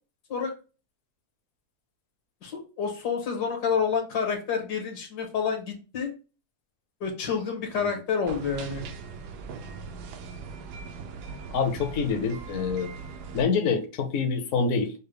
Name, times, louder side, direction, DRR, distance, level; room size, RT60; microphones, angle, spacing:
voice 1, 2.4-6.1 7.0-8.8, left 6 dB, 80° left, 1.8 m, -28 dB
sound 1, 8.3-13.4, right 5 dB, 85° right, 1.2 m, -40 dB
voice 2, 11.5-12.9 13.3-14.9, left 5 dB, 60° left, 0.9 m, -26 dB
5.5 x 2.1 x 3.3 m
omnidirectional pair, 1.7 m